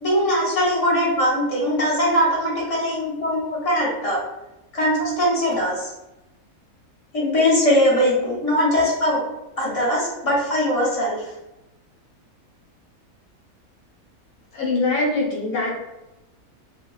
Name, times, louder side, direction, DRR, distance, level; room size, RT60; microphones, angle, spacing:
voice 1, 0.0-4.2 4.7-5.9 7.1-9.2 9.6-11.2, equal, 40° left, -6 dB, 0.5 m, -21 dB
voice 2, 14.5-15.8, left 2 dB, 75° left, -5 dB, 1.1 m, -23 dB
2.6 x 2.2 x 2.2 m, 0.98 s
omnidirectional pair, 1.5 m